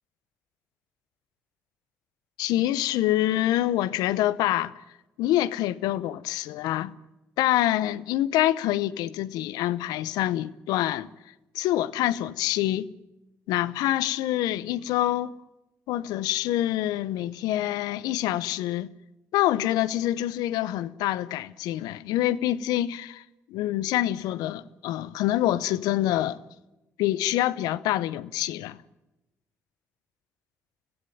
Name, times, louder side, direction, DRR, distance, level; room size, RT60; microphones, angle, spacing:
voice 1, 2.4-4.7 5.2-7.0 7.4-11.1 11.5-12.9 13.5-15.3 15.9-18.9 19.3-23.2 23.5-26.4 27.0-28.8, left 14 dB, 80° left, 0.8 m, -26 dB
24.5 x 16.0 x 9.2 m
supercardioid pair, 55°, 7 cm